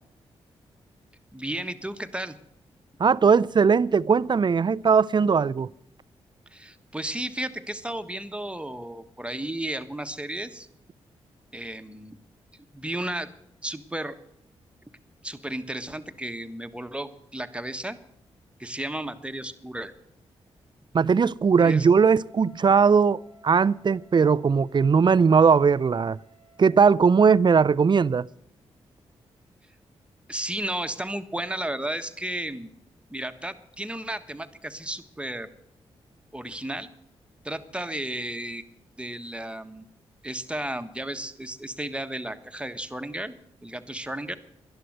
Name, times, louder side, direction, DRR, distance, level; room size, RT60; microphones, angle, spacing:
voice 1, 1.3-2.4 6.5-10.7 11.5-12.2 12.7-13.3 13.6-14.1 15.2-18.0 18.6-19.9 21.6-21.9 30.3-32.7 33.1-35.5 36.3-36.9 37.4-38.6 39.0-39.9 40.2-43.3 43.6-44.4, right 1 dB, 10° right, 1.4 m, -33 dB
voice 2, 3.0-5.7 20.9-26.2 26.6-28.3, right 5 dB, 40° right, 0.5 m, -19 dB
Wind instrument woodwind instrument, 22.2-26.8, equal, 70° left, 5.4 m, -57 dB
11.5 x 11.5 x 7.9 m
supercardioid pair, 50°, 12 cm